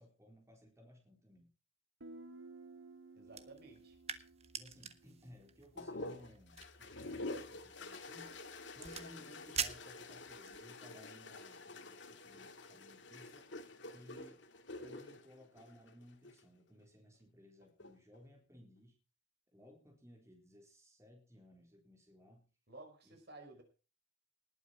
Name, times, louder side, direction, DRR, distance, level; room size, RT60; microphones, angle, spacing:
voice 1, 0.0-1.5 4.5-13.5 13.9-14.4 14.8-19.0 19.5-22.5 23.0-23.2, equal, 15° right, 1 dB, 4.1 m, -59 dB
Guitar, 2.0-5.6, right 3 dB, 90° right, 1.5 m, -56 dB
voice 2, 3.1-4.0 22.7-23.6, right 2 dB, 55° right, 5 dB, 4.8 m, -55 dB
sound 1, 3.3-10.6, right 7 dB, 30° right, 1.4 m, -46 dB
sound 2, 5.8-16.4 17.6-18.2, left 2 dB, 65° left, 1.9 m, -48 dB
19.5 x 9.4 x 4.5 m, 0.35 s
head